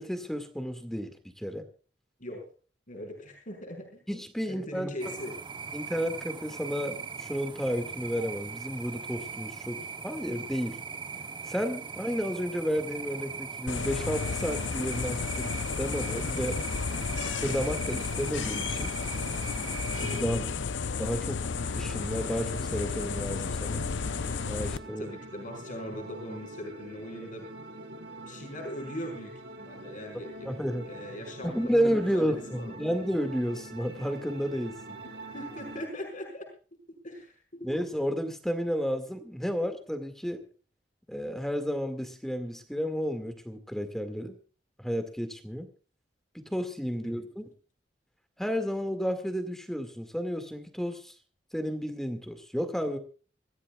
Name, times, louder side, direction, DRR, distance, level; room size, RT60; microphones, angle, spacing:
voice 1, 0.0-1.7 4.1-5.2 5.7-10.8 11.5-16.6 17.4-18.9 20.0-20.4 21.0-23.9 24.4-25.0 30.4-30.9 31.4-34.8 37.6-40.5 41.1-44.4 44.8-45.7 46.3-47.5 48.4-51.1 51.5-53.0, equal, ahead, 7 dB, 2.1 m, -32 dB
voice 2, 2.9-4.0 4.5-5.3 20.2-20.5 25.0-27.5 28.3-29.3 29.6-30.5 30.8-32.8 35.0-36.4 37.0-37.7 47.0-47.1, left 1 dB, 45° left, 2 dB, 5.5 m, -40 dB
sound 1, 5.0-20.2, right 5 dB, 25° right, 0.9 m, -40 dB
sound 2, 13.7-24.8, left 5 dB, 90° left, 0.6 m, -32 dB
sound 3, 21.5-35.9, right 1 dB, 70° right, 4.5 m, -45 dB
26.0 x 15.0 x 2.4 m, 0.38 s
head